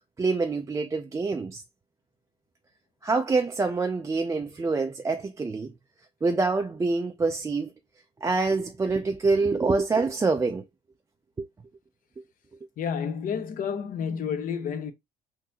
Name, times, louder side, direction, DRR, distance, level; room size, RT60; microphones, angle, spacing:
voice 1, 0.2-1.6 3.0-5.7 6.2-7.7 8.2-10.6 11.4-11.5, right 3 dB, 20° right, 0.4 m, -26 dB
voice 2, 12.8-14.9, left 7 dB, 55° left, 0.7 m, -30 dB
3.8 x 2.7 x 2.8 m
cardioid pair, 110°, 17 cm